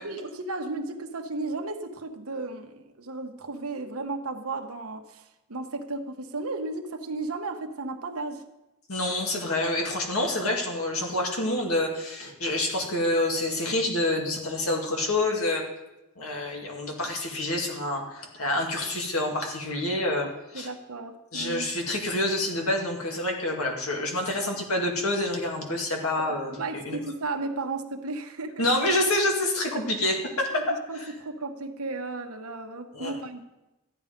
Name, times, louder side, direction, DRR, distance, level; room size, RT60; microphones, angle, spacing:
voice 1, 0.0-8.4 20.5-21.7 26.2-28.6 30.0-30.1 30.5-30.6 30.9-33.4, right 3 dB, 70° right, 5 dB, 1.2 m, -34 dB
voice 2, 8.9-15.6 16.2-20.7 21.3-27.0 28.6-30.6 30.9-31.1 32.9-33.2, left 1 dB, 70° left, 1 dB, 2.2 m, -27 dB
13.5 x 9.8 x 5.2 m, 0.98 s
head